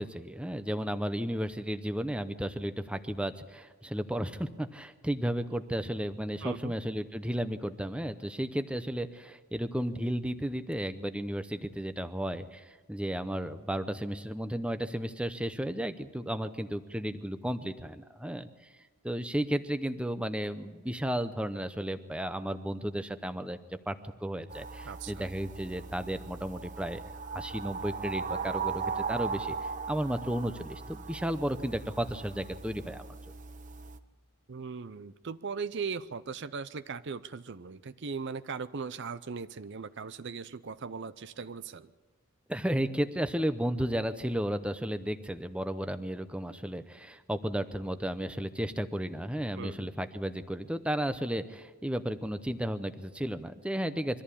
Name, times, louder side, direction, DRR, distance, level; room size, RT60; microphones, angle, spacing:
voice 1, 0.0-18.5 19.0-23.6 23.9-27.0 27.3-33.2 42.5-54.2, equal, 5° right, 10 dB, 0.7 m, -33 dB
voice 2, 6.4-6.7 24.8-25.3 34.5-41.9 49.6-49.9, right 5 dB, 50° right, 14 dB, 0.5 m, -39 dB
sound 1, 24.5-34.0, right 5 dB, 35° right, 0.9 m, -38 dB
23.5 x 14.0 x 8.5 m, 1.3 s
head